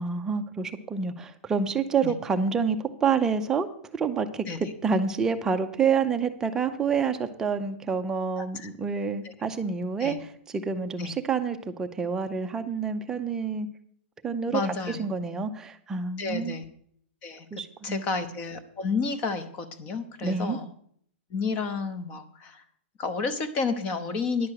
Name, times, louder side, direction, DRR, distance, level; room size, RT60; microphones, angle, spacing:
voice 1, 0.0-10.2 10.5-13.7 14.2-14.6 14.9-16.6 17.5-18.1 20.2-20.6, right 5 dB, 10° right, 7 dB, 0.6 m, -28 dB
voice 2, 8.4-8.7 9.2-9.3 10.0-10.2 11.0-11.1 14.5-15.0 16.2-16.6 17.2-17.5 17.8-20.7 21.3-22.6 23.0-24.5, left 4 dB, 20° left, 13 dB, 0.8 m, -31 dB
11.0 x 7.3 x 6.5 m, 0.63 s
hypercardioid pair, 175°, 7 cm